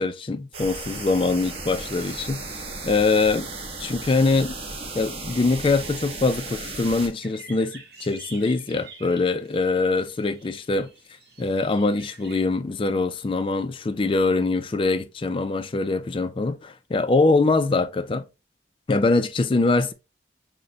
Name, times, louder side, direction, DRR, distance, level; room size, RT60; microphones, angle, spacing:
voice 1, 0.0-3.5 3.8-4.5 4.9-10.9 11.4-18.3 18.9-19.9, left 3 dB, 30° left, 0.4 m, -23 dB
sound 1, 0.5-7.1, right 3 dB, 35° right, 0.9 m, -35 dB
sound 2, 7.2-12.4, right 4 dB, 60° right, 1.2 m, -47 dB
6.4 x 2.2 x 2.7 m
head